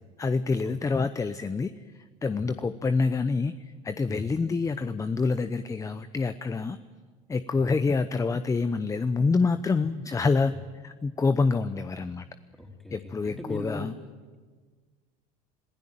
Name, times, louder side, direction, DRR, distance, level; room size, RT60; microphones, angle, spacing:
voice 1, 0.2-1.7 2.2-6.8 7.3-10.6 10.8-12.2 12.9-13.9, left 4 dB, 15° left, 12 dB, 0.8 m, -27 dB
voice 2, 12.6-13.9, left 2 dB, ahead, 2 dB, 4.2 m, -40 dB
26.5 x 16.0 x 9.1 m, 1.5 s
supercardioid pair, 95°, 19 cm